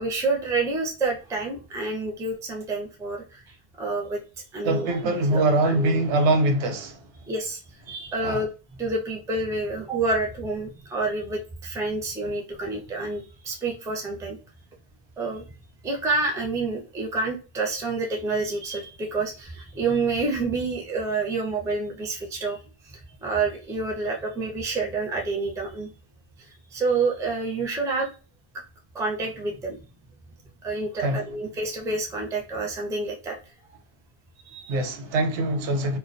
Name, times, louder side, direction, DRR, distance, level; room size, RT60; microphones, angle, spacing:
voice 1, 0.0-4.2 4.5-6.0 7.3-7.6 7.9-8.5 8.8-14.4 15.2-15.5 15.8-22.6 22.8-22.9 23.2-25.9 26.4-28.1 28.9-29.8 30.6-33.4 34.4-34.8, right 3 dB, 5° right, 0.3 m, -28 dB
voice 2, 4.6-7.0 8.2-8.4 31.0-31.2 34.7-36.0, right 2 dB, 85° right, 0.9 m, -23 dB
2.3 x 2.2 x 2.4 m
omnidirectional pair, 1.1 m